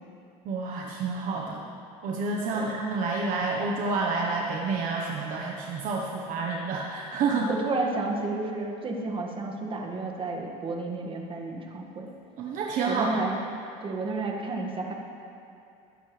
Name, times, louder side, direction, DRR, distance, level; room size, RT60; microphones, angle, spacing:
voice 1, 0.4-1.7 2.0-7.5 12.4-13.2, right 4 dB, 55° right, -1 dB, 1.2 m, -29 dB
voice 2, 7.5-12.1 12.9-13.4 13.8-14.9, right 3 dB, 30° right, 0 dB, 2.0 m, -31 dB
20.5 x 11.0 x 3.4 m, 2.6 s
supercardioid pair, 110°, 16 cm